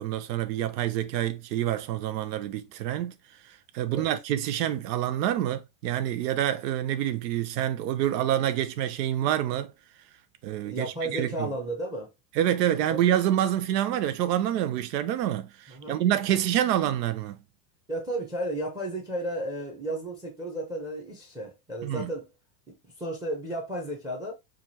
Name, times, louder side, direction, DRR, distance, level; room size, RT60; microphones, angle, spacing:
voice 1, 0.0-3.1 3.7-9.7 10.4-11.5 12.4-17.4 21.8-22.1, right 11 dB, 75° right, 0.7 m, -27 dB
voice 2, 10.6-12.1 12.8-13.1 15.7-16.0 17.9-22.3 22.7-24.3, right 1 dB, 5° right, 0.7 m, -33 dB
4.9 x 2.5 x 2.8 m
supercardioid pair, 145°, 50 cm